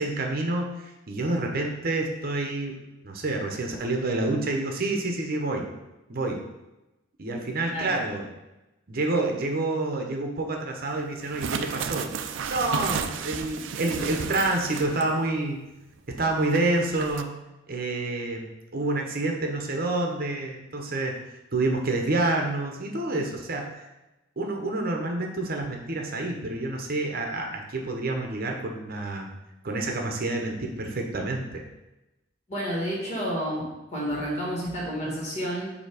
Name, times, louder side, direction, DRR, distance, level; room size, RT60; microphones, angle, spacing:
voice 1, 0.0-2.8 3.0-5.7 6.1-6.4 7.2-8.2 8.9-12.1 12.5-15.6 16.1-17.4 17.7-18.5 18.7-21.1 21.5-23.9 24.4-29.3 29.6-31.6, right 2 dB, 50° right, 2 dB, 0.8 m, -28 dB
voice 2, 7.7-8.0 32.5-35.7, equal, 40° left, -5 dB, 2.1 m, -30 dB
sound 1, 11.2-15.2 15.5-15.6 16.5-17.2, right 6 dB, 80° right, 0.4 m, -33 dB
6.9 x 2.8 x 4.8 m, 0.99 s
head